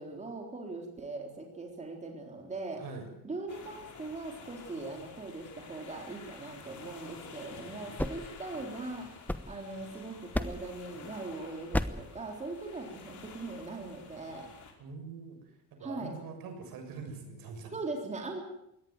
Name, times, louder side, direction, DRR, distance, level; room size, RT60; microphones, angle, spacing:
voice 1, 0.0-2.8 3.2-9.2 9.5-14.5 15.8-16.1 17.7-18.4, right 3 dB, 20° right, 1 dB, 3.9 m, -40 dB
voice 2, 2.7-3.1 14.8-15.4 15.7-17.8, right 4 dB, 75° right, 5 dB, 7.3 m, -43 dB
sound 1, 3.5-14.7, left 5 dB, 55° left, 5.4 m, -50 dB
sound 2, 8.0-9.9 10.3-10.8 11.7-12.2, left 1 dB, 5° left, 1.0 m, -35 dB
22.5 x 18.0 x 9.3 m, 0.79 s
cardioid pair, 155°, 35 cm